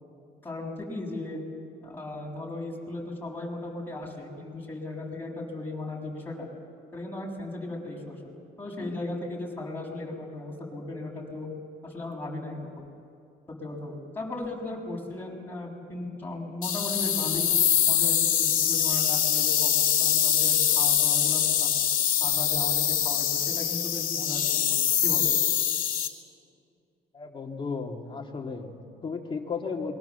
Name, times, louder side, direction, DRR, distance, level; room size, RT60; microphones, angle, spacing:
voice 1, 0.4-1.4 1.8-6.5 6.9-8.2 8.6-11.5 11.8-12.9 13.6-17.5 17.9-21.8 22.2-25.4, left 2 dB, 10° left, -1 dB, 6.9 m, -36 dB
sound 1, 16.6-26.1, left 9 dB, 55° left, 3.1 m, -24 dB
voice 2, 27.1-29.9, left 5 dB, 30° left, 1 dB, 3.0 m, -34 dB
27.0 x 22.5 x 7.3 m, 2.4 s
cardioid pair, 110°, 17 cm